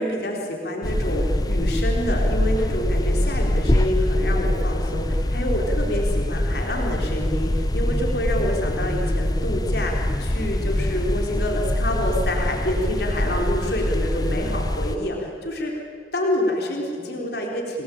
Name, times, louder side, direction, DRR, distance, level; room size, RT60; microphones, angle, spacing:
voice 1, 0.0-15.8 16.1-17.8, left 1 dB, 60° left, 0 dB, 4.1 m, -27 dB
sound 1, 0.8-15.0, left 1 dB, 20° left, 0.7 m, -24 dB
29.5 x 19.5 x 8.7 m, 2.5 s
head